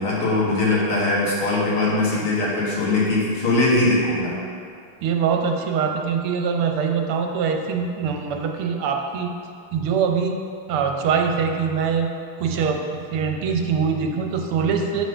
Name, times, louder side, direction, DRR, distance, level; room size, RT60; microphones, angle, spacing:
voice 1, 0.0-4.4, left 2 dB, 85° left, -6 dB, 2.8 m, -21 dB
voice 2, 5.0-9.3 9.7-10.4 10.7-12.1 12.4-12.8 13.1-15.0, right 6 dB, 80° right, 3 dB, 1.7 m, -23 dB
7.5 x 5.8 x 5.6 m, 2.4 s
omnidirectional pair, 2.4 m